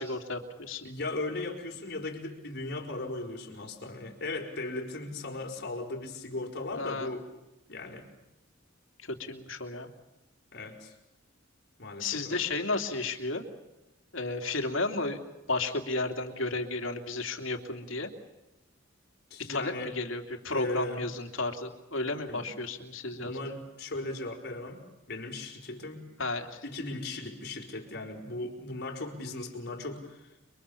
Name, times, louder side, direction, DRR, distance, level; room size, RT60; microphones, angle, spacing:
voice 1, 0.0-0.8 6.7-7.1 9.1-9.9 12.0-13.4 14.1-15.2 15.5-18.1 19.5-23.4 26.2-26.6, left 3 dB, 75° left, 5 dB, 3.1 m, -33 dB
voice 2, 0.8-7.3 7.7-8.1 10.5-10.9 11.8-12.4 19.3-19.9 20.5-21.1 22.3-22.5 23.1-26.0 26.6-30.3, left 2 dB, 55° left, 2 dB, 5.1 m, -37 dB
30.0 x 23.5 x 7.2 m, 0.98 s
head